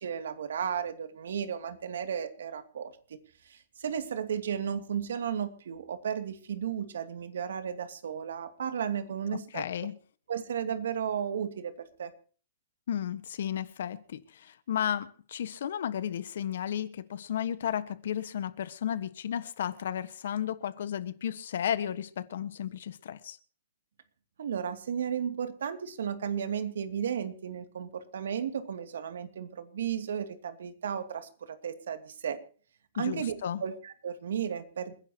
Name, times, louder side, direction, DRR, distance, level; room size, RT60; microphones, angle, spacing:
voice 1, 0.0-3.2 3.4-9.6 10.3-12.1 24.4-32.4 32.9-34.9, right 8 dB, 80° right, 2.5 m, -34 dB
voice 2, 9.5-10.0 12.9-23.4 33.0-33.6, left 9 dB, 60° left, 1.4 m, -33 dB
28.5 x 10.5 x 2.9 m
hypercardioid pair, 170°, 0 cm